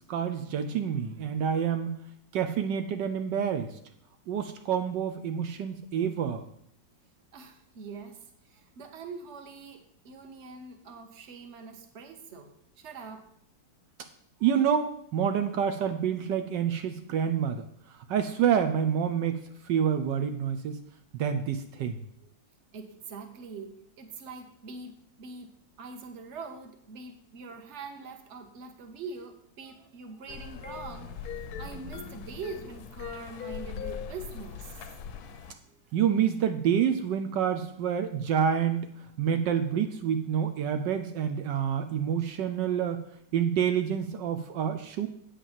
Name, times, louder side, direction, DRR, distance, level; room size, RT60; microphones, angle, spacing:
voice 1, 0.1-1.9 2.3-3.7 4.3-6.4 14.4-17.6 18.1-19.4 19.6-20.8 21.2-22.0 35.9-38.9 39.2-43.0 43.3-45.1, right 8 dB, 75° right, 8 dB, 1.4 m, -27 dB
voice 2, 7.3-12.5 12.8-13.3 22.7-25.5 25.8-34.9, right 4 dB, 45° right, 6 dB, 1.3 m, -43 dB
sound 1, 30.3-35.5, left 7 dB, 70° left, 1.0 m, -40 dB
8.5 x 5.4 x 7.3 m, 0.67 s
omnidirectional pair, 2.0 m